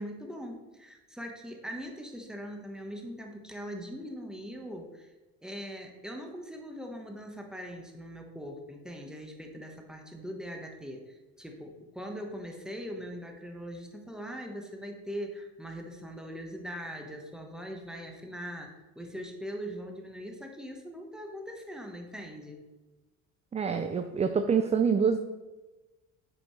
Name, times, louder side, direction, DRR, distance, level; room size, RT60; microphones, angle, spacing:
voice 1, 0.0-5.1 5.4-22.6, equal, ahead, 2 dB, 1.3 m, -41 dB
voice 2, 23.5-25.2, right 6 dB, 15° right, 7 dB, 0.4 m, -26 dB
8.6 x 5.1 x 3.2 m, 1.1 s
hypercardioid pair, 75°, 41 cm